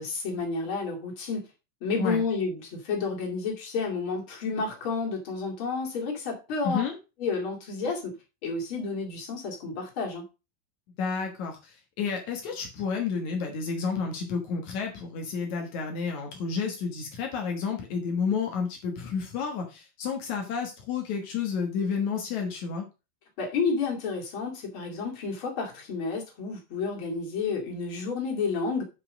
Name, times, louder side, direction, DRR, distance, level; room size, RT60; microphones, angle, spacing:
voice 1, 0.0-1.4 1.8-6.8 7.2-8.1 8.4-10.2 23.4-28.8, left 4 dB, 40° left, 1 dB, 2.2 m, -30 dB
voice 2, 11.0-22.8, left 5 dB, 90° left, 3 dB, 1.6 m, -31 dB
9.4 x 5.2 x 5.1 m, 0.29 s
omnidirectional pair, 5.6 m